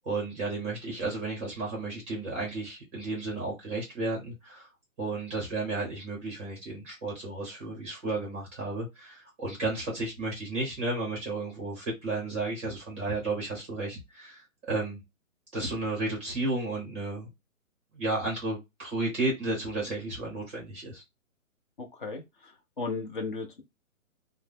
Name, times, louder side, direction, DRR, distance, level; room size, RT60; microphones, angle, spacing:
voice 1, 0.0-4.7 5.0-15.0 15.5-17.3 17.9-21.0, right 2 dB, 10° right, 0.7 m, -33 dB
voice 2, 21.8-22.5 22.8-23.6, left 3 dB, 40° left, 0.7 m, -35 dB
3.2 x 2.0 x 3.3 m
hypercardioid pair, 165°, 41 cm